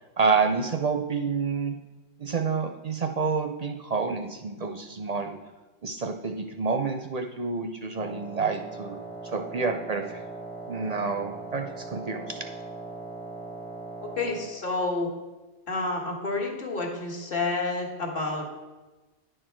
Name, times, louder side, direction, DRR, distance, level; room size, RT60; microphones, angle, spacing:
voice 1, 0.2-1.8 2.2-5.4 5.8-10.2 10.7-12.4, right 5 dB, 50° right, 4 dB, 0.5 m, -28 dB
Wind instrument woodwind instrument, 8.0-14.6, right 3 dB, 5° left, 0.5 m, -40 dB
voice 2, 14.0-15.1 15.7-18.5, left 3 dB, 55° left, 0 dB, 1.5 m, -29 dB
10.0 x 4.5 x 4.5 m, 1.2 s
omnidirectional pair, 1.1 m